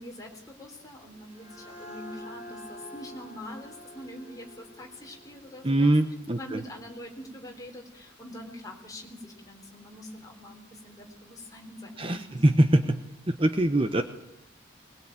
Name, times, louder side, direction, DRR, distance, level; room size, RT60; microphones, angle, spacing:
voice 1, 0.0-5.9 6.4-12.8, left 1 dB, 20° left, 1 dB, 3.9 m, -44 dB
sound 1, 1.0-6.5, left 1 dB, 35° left, 6.1 m, -47 dB
voice 2, 5.6-6.6 12.0-13.0 13.3-14.0, right 1 dB, 25° right, 7 dB, 1.0 m, -23 dB
21.5 x 20.5 x 8.9 m, 0.86 s
head